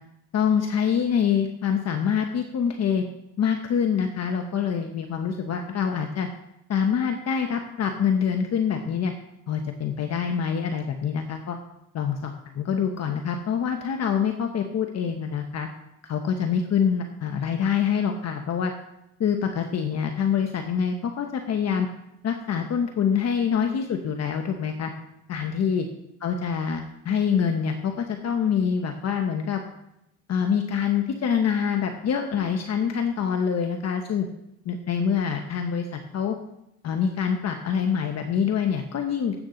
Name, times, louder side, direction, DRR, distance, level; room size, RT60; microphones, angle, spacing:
voice 1, 0.3-3.0 3.4-6.3 6.7-9.1 9.5-11.6 11.9-15.7 16.0-18.7 19.2-21.9 22.2-24.9 25.3-25.8 26.2-29.6 30.3-34.3 34.6-36.4 36.8-39.3, left 7 dB, 60° left, 4 dB, 1.1 m, -25 dB
12.0 x 8.5 x 3.9 m, 0.84 s
cardioid pair, 90°, 30 cm